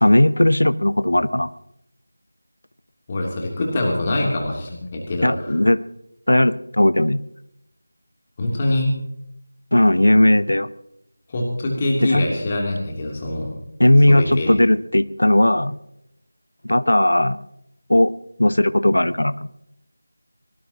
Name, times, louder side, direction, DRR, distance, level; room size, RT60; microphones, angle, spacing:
voice 1, 0.0-1.5 5.2-5.8 6.3-7.2 9.7-10.7 12.0-12.3 13.8-15.8 16.6-17.4 17.9-18.1 18.4-19.4, left 1 dB, 70° left, 15 dB, 0.9 m, -17 dB
voice 2, 3.1-5.5 8.4-9.0 11.3-13.5 14.1-14.5, left 1 dB, 25° left, -1 dB, 3.2 m, -24 dB
23.5 x 19.5 x 3.0 m, 0.79 s
figure-of-eight pair, 165°, 0 cm